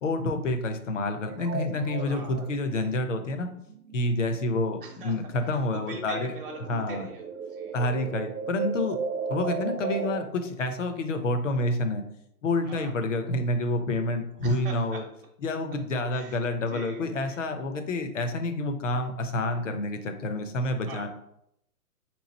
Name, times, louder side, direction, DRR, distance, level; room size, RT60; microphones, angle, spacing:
voice 1, 0.0-3.5 3.9-6.3 6.7-7.0 7.7-9.0 9.3-12.0 12.4-15.0 15.4-21.1, left 2 dB, 50° left, 7 dB, 0.6 m, -28 dB
sound 1, 1.3-5.4 5.7-10.2, right 5 dB, 75° right, 0.7 m, -35 dB
voice 2, 2.0-2.4 4.8-5.2 5.7-7.7 12.7-12.9 14.4-15.0 16.1-16.4 16.7-17.4 20.9-21.1, right 3 dB, 35° right, -1 dB, 0.8 m, -42 dB
3.4 x 3.1 x 3.9 m, 0.75 s
hypercardioid pair, 165°, 48 cm